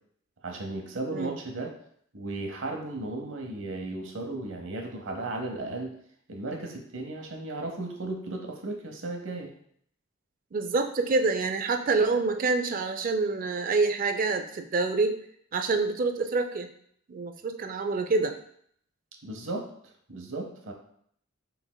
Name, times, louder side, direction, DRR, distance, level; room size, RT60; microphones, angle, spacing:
voice 1, 0.4-1.7 2.1-5.9 6.3-9.5 19.2-19.7 20.1-20.7, right 2 dB, 60° right, 2 dB, 0.8 m, -35 dB
voice 2, 10.5-15.2 15.5-16.7 17.1-18.3, right 3 dB, 40° right, 7 dB, 0.3 m, -27 dB
6.0 x 3.3 x 2.2 m, 0.66 s
head